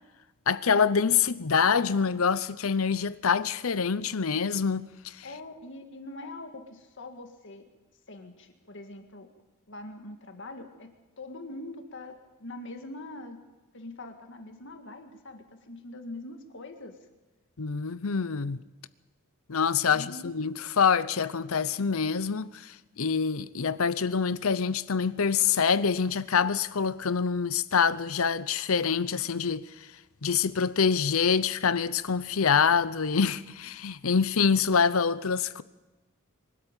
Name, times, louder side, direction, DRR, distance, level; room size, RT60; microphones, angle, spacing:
voice 1, 0.5-5.2 17.6-18.6 19.5-29.7 30.2-35.6, left 6 dB, 80° left, 0.7 m, -26 dB
voice 2, 5.2-7.7 8.1-9.3 9.7-13.4 13.7-17.0 19.8-20.4, left 2 dB, 60° left, 1.9 m, -43 dB
24.0 x 13.0 x 9.0 m
head